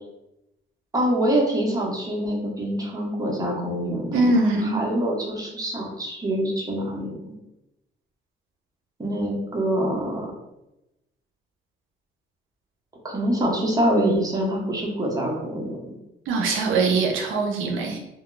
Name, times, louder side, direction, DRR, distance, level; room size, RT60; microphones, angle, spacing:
voice 1, 0.9-4.3 4.7-7.3 9.0-10.3 13.0-16.0, right 1 dB, 20° right, -2 dB, 0.9 m, -25 dB
voice 2, 4.1-4.8 16.3-18.0, right 3 dB, 85° right, 1 dB, 0.5 m, -22 dB
2.3 x 2.2 x 3.8 m, 0.92 s
cardioid pair, 90°, 20 cm